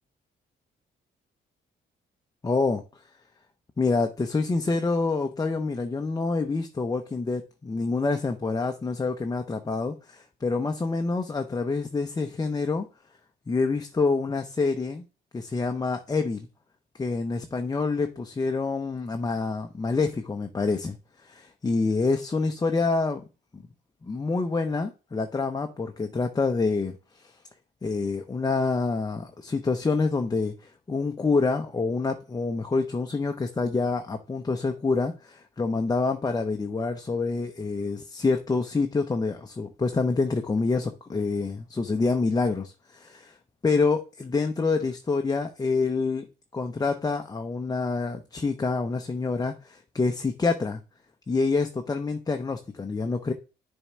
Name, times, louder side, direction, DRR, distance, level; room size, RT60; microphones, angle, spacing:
voice 1, 2.4-2.8 3.8-12.9 13.5-15.0 15.3-16.5 17.0-21.0 21.2-23.2 23.5-23.6 24.0-27.3 27.8-43.4 43.6-46.3 46.5-50.8 51.3-53.3, left 4 dB, 20° left, 0.7 m, -27 dB
7.0 x 3.6 x 4.2 m
cardioid pair, 90°, 20 cm